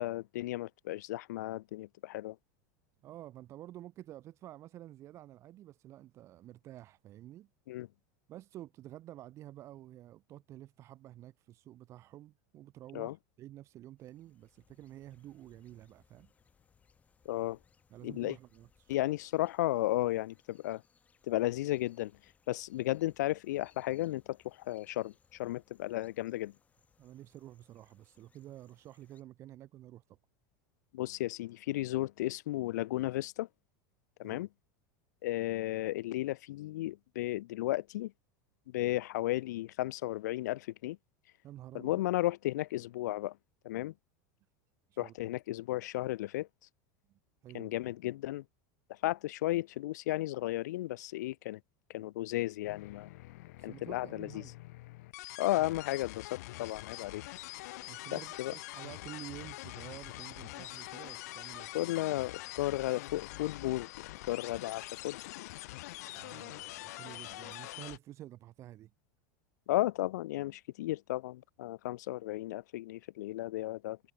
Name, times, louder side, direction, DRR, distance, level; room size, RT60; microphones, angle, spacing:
voice 1, 0.0-2.4 7.7-7.9 12.9-13.2 17.3-17.6 18.0-18.4 18.9-20.8 21.3-22.1 22.5-26.5 30.9-33.5 34.2-34.5 35.2-38.1 38.7-41.0 41.7-43.4 43.6-43.9 45.0-46.5 47.5-48.4 48.9-51.6 51.9-53.1 53.6-54.4 55.4-57.2 58.1-58.5 61.7-65.2 69.7-74.0, left 16 dB, 90° left, 0.5 m, -34 dB
voice 2, 3.0-7.5 8.3-16.3 17.9-18.9 27.0-30.2 34.2-34.4 41.4-42.0 44.9-45.1 47.1-47.7 53.6-54.5 57.8-61.7 66.1-68.9, right 14 dB, 30° right, 2.7 m, -50 dB
sound 1, 14.0-29.2, left 6 dB, 15° left, 5.7 m, -70 dB
sound 2, 52.7-68.0, left 19 dB, 70° left, 1.4 m, -45 dB
supercardioid pair, 160°, 9 cm